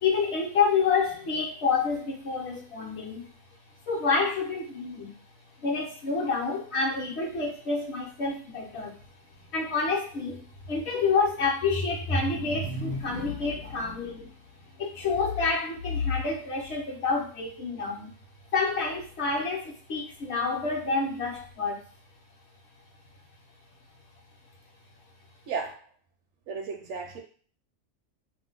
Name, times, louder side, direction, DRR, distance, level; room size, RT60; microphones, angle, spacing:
voice 1, 0.0-3.3 3.9-5.1 5.6-8.9 9.5-14.3 14.8-18.1 18.5-21.8, left 4 dB, 60° left, -1 dB, 1.0 m, -28 dB
voice 2, 25.5-25.8 26.5-27.2, right 5 dB, 70° right, 3 dB, 0.8 m, -34 dB
2.7 x 2.1 x 3.7 m, 0.43 s
omnidirectional pair, 1.4 m